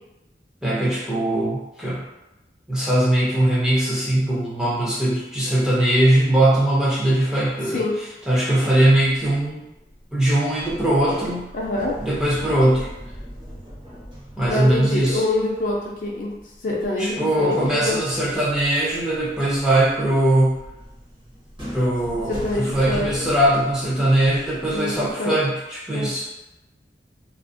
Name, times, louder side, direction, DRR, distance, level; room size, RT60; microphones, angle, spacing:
voice 1, 0.6-2.0 2.7-7.8 8.3-9.7 10.1-11.5 12.0-12.9 14.4-15.2 17.0-20.6 21.7-26.3, right 1 dB, 5° right, -7 dB, 0.5 m, -20 dB
voice 2, 7.6-7.9 11.5-12.0 14.5-16.4 16.6-18.0 22.3-23.3 24.7-25.3 25.9-26.1, left 2 dB, 50° left, -4 dB, 0.5 m, -25 dB
sound 1, 9.8-10.3 10.5-17.1 17.4-25.1, equal, 30° right, 0.8 m, -39 dB
2.4 x 2.0 x 2.5 m, 0.95 s
head